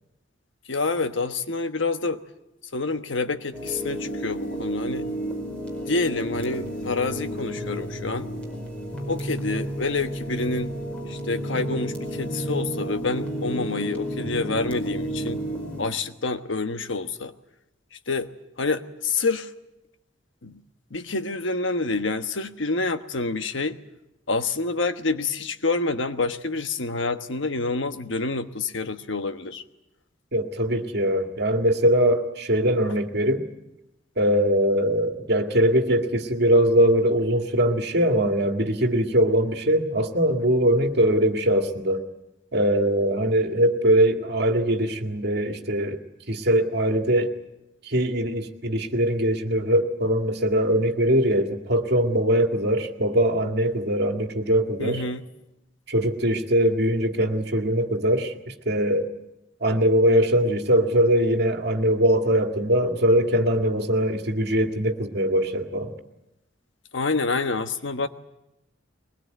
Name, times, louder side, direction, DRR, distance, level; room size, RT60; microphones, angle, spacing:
voice 1, 0.7-2.2 2.7-5.1 5.9-8.3 9.1-10.7 11.1-15.4 15.8-17.3 18.1-18.3 18.6-19.5 20.4-20.6 20.9-23.8 24.3-29.6 54.8-55.2 66.9-68.1, left 3 dB, 70° left, 9 dB, 1.3 m, -27 dB
sound 1, 3.5-15.8, equal, 5° left, 5.0 m, -31 dB
voice 2, 30.3-33.4 34.2-42.0 42.5-46.0 46.3-47.3 47.8-55.0 55.9-59.1 59.6-65.9, equal, 60° right, 5 dB, 2.1 m, -22 dB
22.0 x 20.5 x 9.3 m, 0.92 s
head